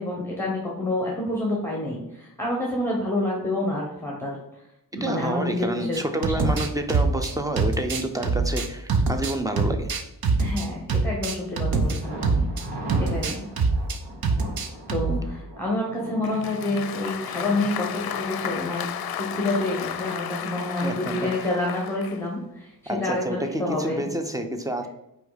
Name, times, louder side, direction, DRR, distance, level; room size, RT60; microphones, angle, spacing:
voice 1, 0.0-4.4 4.9-6.0 6.3-6.6 10.4-12.5 13.0-13.4 14.9-18.9 19.2-24.0, left 2 dB, 5° left, -2 dB, 1.1 m, -28 dB
voice 2, 4.9-9.9 20.8-21.3 22.9-24.9, right 1 dB, 10° right, 6 dB, 0.5 m, -29 dB
sound 1, 5.9-12.6 12.9-14.0 14.2-15.2, right 4 dB, 65° right, 0.8 m, -24 dB
Thunder, 12.0-19.8 20.1-20.2 20.6-20.7, right 1 dB, 85° right, 1.9 m, -40 dB
Applause, 16.2-22.2, left 9 dB, 65° left, 0.5 m, -33 dB
5.6 x 4.5 x 4.0 m, 0.87 s
wide cardioid pair, 175°, 40 cm